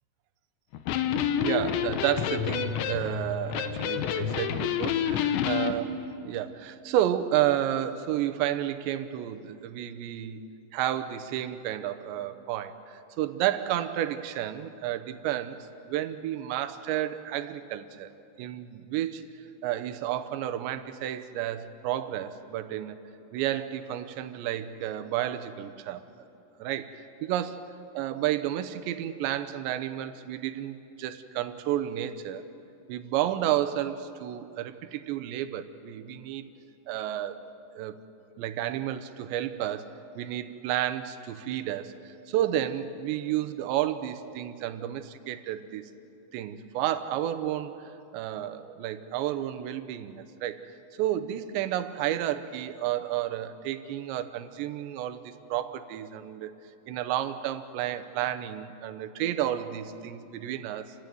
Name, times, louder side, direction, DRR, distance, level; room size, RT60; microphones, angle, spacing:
Electric guitar, 0.7-5.7, left 8 dB, 85° left, 3.4 m, -28 dB
voice 1, 1.4-10.5 10.7-15.6 15.8-18.1 18.4-23.0 23.3-26.1 26.6-32.4 32.9-36.4 36.9-37.5 37.7-38.0 38.4-45.9 46.3-50.7 51.0-56.5 56.9-60.9, right 12 dB, 80° right, 11 dB, 3.1 m, -31 dB
29.0 x 15.5 x 9.3 m, 2.7 s
omnidirectional pair, 5.1 m